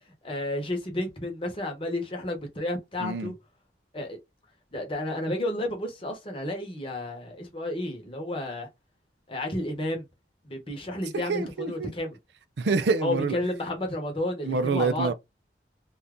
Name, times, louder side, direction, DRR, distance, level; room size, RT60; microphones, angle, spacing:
voice 1, 0.2-3.3 3.9-4.2 4.7-8.7 9.3-10.1 10.4-12.2 13.0-15.1, left 1 dB, 30° left, 0.9 m, -31 dB
voice 2, 3.0-3.3 11.1-11.9 12.6-13.4 14.4-15.1, right 4 dB, 70° right, 0.5 m, -26 dB
2.6 x 2.4 x 3.5 m
head